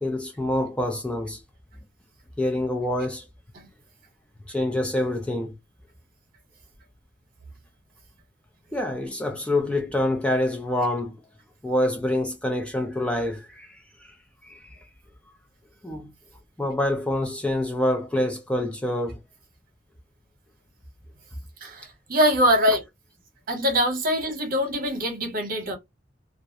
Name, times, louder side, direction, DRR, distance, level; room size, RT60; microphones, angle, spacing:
voice 1, 0.0-1.4 2.4-3.3 4.5-5.5 8.7-11.2 11.6-14.2 14.4-14.8 15.8-16.1 16.6-19.2, left 1 dB, 5° left, 0.3 m, -26 dB
voice 2, 21.6-22.8 23.5-25.8, equal, 50° right, 0.9 m, -23 dB
2.3 x 2.0 x 2.5 m
head